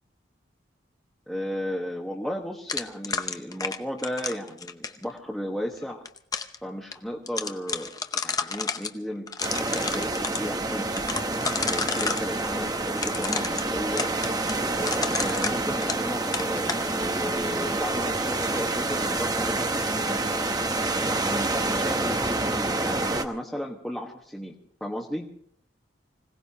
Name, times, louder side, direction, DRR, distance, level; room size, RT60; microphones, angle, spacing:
voice 1, 1.3-6.0 6.6-11.0 11.7-14.1 14.7-20.4 21.0-25.2, equal, 5° left, -3 dB, 1.2 m, -34 dB
sound 1, 2.7-5.0 5.8-6.6 6.9-7.0 7.3-8.9 9.3-10.4 11.0-12.3 13.0-16.1 16.3-16.8, left 5 dB, 20° left, 0.7 m, -30 dB
sound 2, 9.4-23.2, right 2 dB, 20° right, 0.8 m, -28 dB
25.5 x 17.5 x 2.9 m, 0.64 s
head